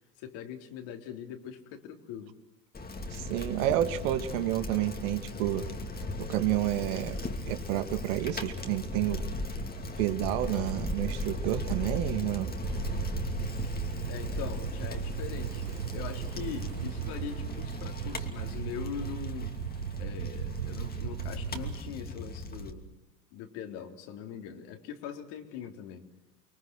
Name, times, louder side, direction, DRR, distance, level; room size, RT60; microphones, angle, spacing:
voice 1, 0.2-2.4 14.1-19.6 20.0-22.9 23.3-26.0, left 8 dB, 55° left, 4 dB, 3.9 m, -41 dB
Bicycle, 2.7-22.7, left 2 dB, 20° left, 2.8 m, -37 dB
voice 2, 3.1-5.7 6.2-7.2 7.5-9.2 10.0-12.5, right 13 dB, 60° right, 8 dB, 2.3 m, -30 dB
sound 1, 12.6-21.8, right 11 dB, 85° right, 0.8 m, -37 dB
30.0 x 23.0 x 6.3 m, 0.90 s
hypercardioid pair, 85°, 47 cm